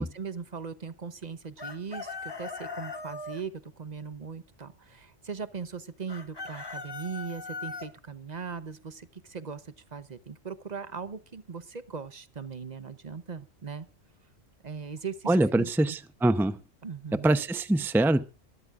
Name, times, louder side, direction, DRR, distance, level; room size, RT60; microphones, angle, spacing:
voice 1, 0.0-13.9 14.6-16.0 16.8-17.3, right 6 dB, 40° right, 13 dB, 0.9 m, -39 dB
Chicken rooster, 1.6-3.4 6.1-7.9, left 3 dB, 20° left, 1.5 m, -39 dB
voice 2, 15.3-16.6 17.2-18.2, right 2 dB, ahead, 11 dB, 0.6 m, -24 dB
24.5 x 13.0 x 2.5 m, 0.31 s
omnidirectional pair, 1.2 m